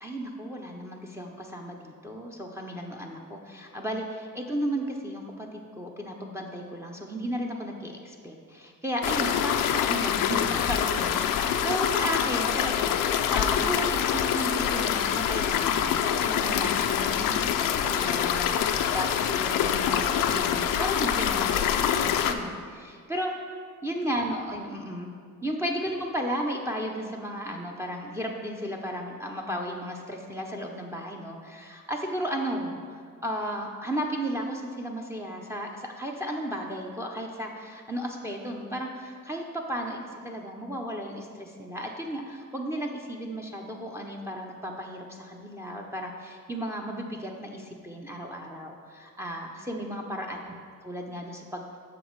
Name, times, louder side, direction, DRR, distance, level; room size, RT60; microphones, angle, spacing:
voice 1, 0.0-23.3 23.8-25.1 25.4-50.5 50.8-51.8, equal, 10° right, 1 dB, 0.7 m, -34 dB
sound 1, 9.0-22.3, left 9 dB, 85° left, 0.5 m, -25 dB
6.4 x 6.2 x 4.6 m, 2.1 s
cardioid pair, 95°, 32 cm